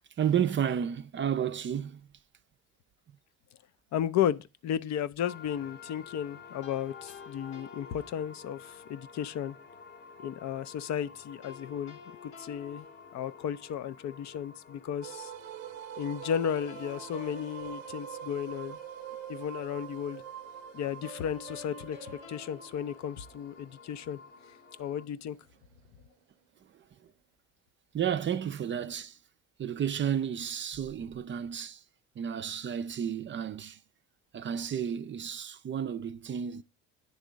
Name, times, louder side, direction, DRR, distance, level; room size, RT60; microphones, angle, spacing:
voice 1, 0.2-2.0 27.9-29.2 29.6-31.8 32.2-33.8 34.3-36.6, right 9 dB, 30° right, 0.5 m, -32 dB
voice 2, 3.9-9.6 10.2-12.9 13.1-15.3 16.0-18.8 19.3-20.2 20.7-24.2 24.8-25.4, left 9 dB, 50° left, 0.5 m, -34 dB
sound 1, 5.2-25.0, left 5 dB, 25° left, 0.9 m, -52 dB
sound 2, 6.6-8.8 11.4-13.8 16.2-18.7 21.0-23.8, left 5 dB, 75° left, 1.2 m, -51 dB
sound 3, 15.0-26.2, right 13 dB, 90° right, 0.6 m, -46 dB
9.3 x 3.6 x 5.0 m
hypercardioid pair, 70°, 37 cm